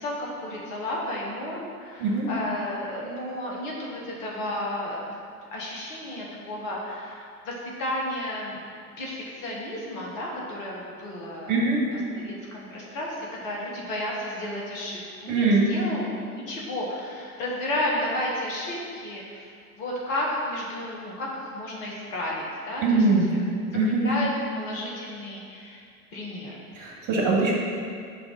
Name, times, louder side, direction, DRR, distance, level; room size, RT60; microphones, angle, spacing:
voice 1, 0.0-5.1 5.5-8.6 9.0-11.6 11.9-23.0 23.3-23.4 23.8-24.3 24.5-25.8 26.1-26.6, left 1 dB, 60° left, -3 dB, 1.4 m, -32 dB
voice 2, 11.5-11.8 15.3-15.7 22.8-23.2 23.7-24.1 26.7-27.5, right 3 dB, 40° right, -2 dB, 1.4 m, -22 dB
5.6 x 3.5 x 5.3 m, 2.2 s
figure-of-eight pair, 75°, 45 cm